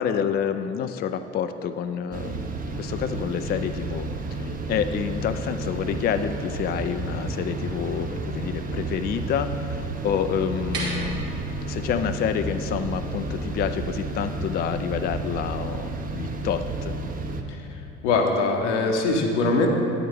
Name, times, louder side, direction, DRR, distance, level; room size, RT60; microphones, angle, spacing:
voice 1, 0.0-11.3 11.7-17.0, left 8 dB, 30° left, 9 dB, 0.4 m, -28 dB
sound 1, 2.1-17.4, right 2 dB, 25° right, 0.8 m, -31 dB
sound 2, 10.4-16.4, right 2 dB, 75° right, 2.1 m, -40 dB
voice 2, 17.5-19.7, left 3 dB, 75° left, 2 dB, 1.1 m, -23 dB
9.5 x 8.5 x 3.5 m, 2.8 s
hypercardioid pair, 60°, 36 cm